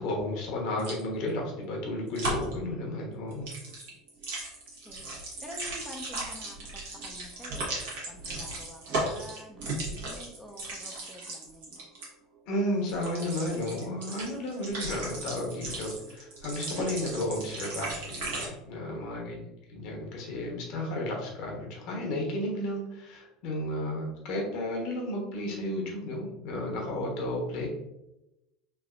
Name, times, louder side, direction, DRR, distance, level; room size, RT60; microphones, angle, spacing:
voice 1, 0.0-3.5 12.5-19.4 19.7-27.7, left 1 dB, 60° left, -1 dB, 0.9 m, -33 dB
sound 1, 0.8-1.0 2.1-2.5 3.3-12.1 12.9-18.5, right 2 dB, 75° right, 1.0 m, -36 dB
voice 2, 4.8-11.9 18.9-19.5, equal, ahead, 1 dB, 0.4 m, -48 dB
3.3 x 2.6 x 2.4 m, 0.92 s
hypercardioid pair, 80°, 0 cm